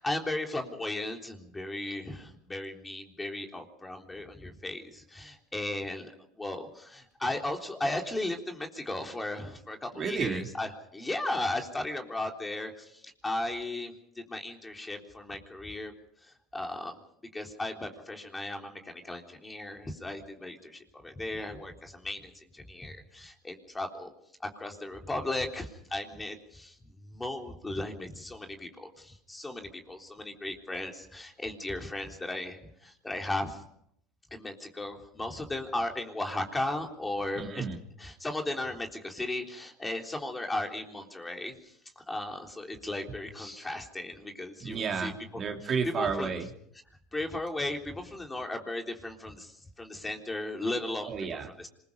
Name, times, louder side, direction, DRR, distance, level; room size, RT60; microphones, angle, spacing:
voice 1, 0.0-6.1 6.4-15.9 16.2-17.0 17.3-24.1 24.4-26.7 27.1-33.6 34.3-37.7 38.0-45.1 46.0-46.3 47.1-51.1 51.6-51.7, left 2 dB, 10° left, 3 dB, 3.7 m, -36 dB
voice 2, 9.9-10.5 37.3-37.8 44.6-46.5 51.0-51.5, right 5 dB, 35° right, 3 dB, 3.3 m, -32 dB
26.5 x 21.5 x 5.5 m, 0.71 s
supercardioid pair, 115°, 0 cm